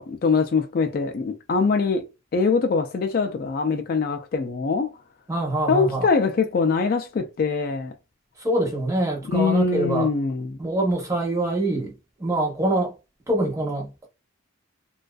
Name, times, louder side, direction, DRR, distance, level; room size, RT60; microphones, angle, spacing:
voice 1, 0.0-2.1 2.3-4.9 5.7-7.9 9.3-10.6, left 4 dB, 45° left, 0.3 m, -23 dB
voice 2, 5.3-6.1 8.4-10.1 10.6-12.9 13.3-14.1, right 1 dB, 15° right, 0.7 m, -25 dB
2.5 x 2.3 x 2.2 m
head